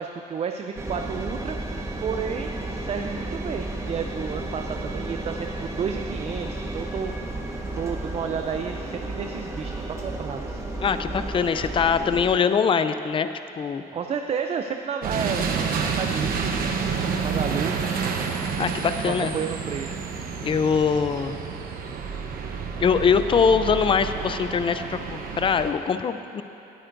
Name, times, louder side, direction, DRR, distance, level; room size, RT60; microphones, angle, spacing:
voice 1, 0.0-1.6 2.0-7.1 7.7-10.7 13.9-16.7 17.2-17.8 19.0-20.1, right 6 dB, 35° right, 5 dB, 0.4 m, -31 dB
Engine, 0.7-12.3, right 1 dB, 15° right, 1.2 m, -33 dB
voice 2, 10.8-13.3 13.6-13.8 18.6-19.3 20.4-21.4 22.8-26.4, left 6 dB, 30° left, 11 dB, 0.4 m, -22 dB
sound 1, 15.0-25.7, right 5 dB, 60° right, 0.9 m, -29 dB
17.5 x 9.1 x 2.6 m, 3.0 s
cardioid pair, 110°, 17 cm